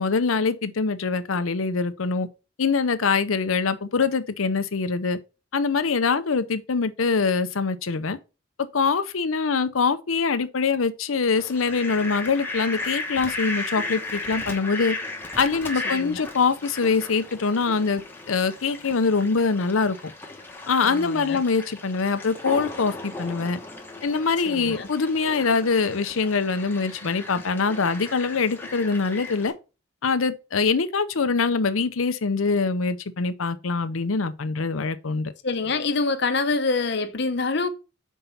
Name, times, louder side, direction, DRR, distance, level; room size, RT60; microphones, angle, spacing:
voice 1, 0.0-2.3 2.6-5.2 5.5-8.2 8.6-15.0 15.4-18.0 18.3-20.1 20.7-23.6 24.0-29.5 30.0-35.3, left 4 dB, 90° left, 0.7 m, -24 dB
Fowl, 11.3-29.5, left 2 dB, 10° left, 1.0 m, -36 dB
voice 2, 15.9-16.3 20.8-21.4 24.5-24.9 35.4-37.7, left 3 dB, 55° left, 0.8 m, -26 dB
5.5 x 4.6 x 5.6 m
head